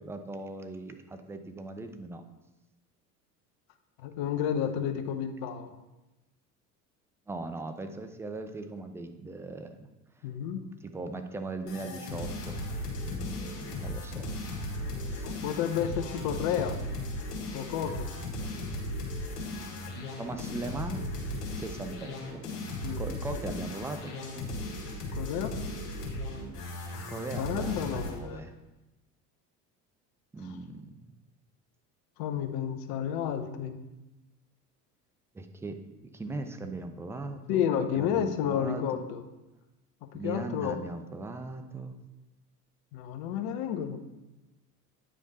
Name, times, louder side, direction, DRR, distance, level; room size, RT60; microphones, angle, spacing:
voice 1, 0.0-2.2 7.3-9.8 10.8-12.6 13.1-14.3 14.9-15.4 20.2-21.0 21.5-22.4 23.0-24.1 27.1-28.5 30.3-31.1 35.3-35.8 36.1-39.0 40.1-41.9, right 2 dB, 5° right, 7 dB, 0.4 m, -39 dB
voice 2, 4.0-5.7 10.2-10.7 15.2-16.8 17.5-18.1 22.8-23.0 25.1-25.6 27.4-28.4 32.2-33.8 37.5-39.2 40.0-40.8 42.9-44.0, left 9 dB, 50° left, 7 dB, 0.9 m, -31 dB
sound 1, 11.7-28.2, left 1 dB, 75° left, 1.6 m, -36 dB
8.9 x 4.9 x 4.0 m, 1.0 s
figure-of-eight pair, 70°, 48 cm